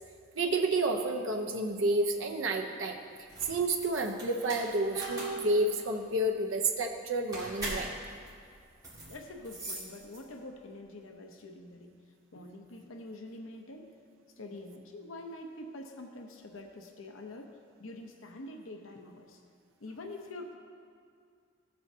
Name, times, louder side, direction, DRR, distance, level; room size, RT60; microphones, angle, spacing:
voice 1, 0.3-3.0 3.5-7.9, right 2 dB, 80° right, 3 dB, 0.7 m, -30 dB
sound 1, 3.2-10.5, right 1 dB, 20° right, 2.0 m, -42 dB
sound 2, 4.9-6.6 6.9-7.0, right 3 dB, 65° right, 2.3 m, -40 dB
voice 2, 9.1-12.0 12.3-13.9 14.4-19.4 19.8-20.6, left 2 dB, 90° left, 3 dB, 0.8 m, -45 dB
14.5 x 7.7 x 2.8 m, 2.2 s
head